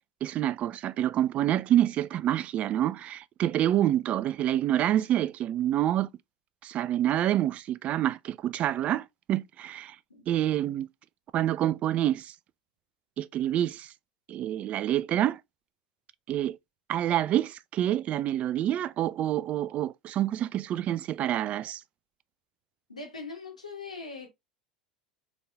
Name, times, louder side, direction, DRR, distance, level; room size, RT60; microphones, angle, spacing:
voice 1, 0.2-6.1 6.6-10.0 10.3-10.9 11.3-12.3 13.2-13.9 14.3-15.4 16.3-16.6 16.9-21.8, right 12 dB, 40° right, 0.3 m, -27 dB
voice 2, 22.9-24.3, left 4 dB, 85° left, 1.7 m, -41 dB
4.2 x 3.5 x 3.4 m
figure-of-eight pair, 80°, 4 cm